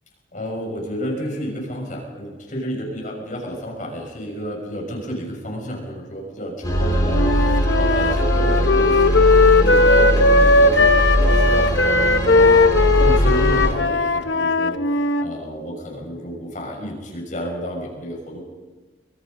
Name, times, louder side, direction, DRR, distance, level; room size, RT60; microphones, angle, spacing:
voice 1, 0.3-12.6 13.0-14.8 15.2-18.4, equal, 45° left, -1 dB, 6.1 m, -30 dB
sound 1, 6.6-13.7, equal, 20° left, 7.7 m, -20 dB
Wind instrument woodwind instrument, 7.1-15.2, left 3 dB, 80° left, 1.0 m, -17 dB
24.5 x 24.0 x 5.4 m, 1.3 s
head